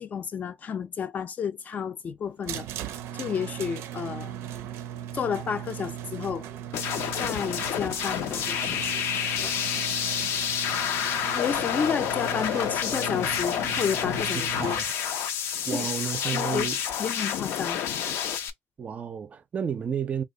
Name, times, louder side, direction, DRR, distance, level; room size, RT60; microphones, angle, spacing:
voice 1, 0.0-4.3 5.1-6.5 7.2-9.6 11.3-14.8 15.7-15.9 16.2-16.7 17.0-17.9, left 7 dB, 40° left, 0.4 m, -31 dB
sound 1, 2.4-14.9, right 11 dB, 90° right, 0.5 m, -38 dB
sound 2, 6.7-18.5, left 9 dB, 85° left, 0.6 m, -29 dB
voice 2, 15.7-16.8 18.8-20.2, right 7 dB, 35° right, 0.4 m, -31 dB
2.7 x 2.3 x 3.7 m
cardioid pair, 130°, 4 cm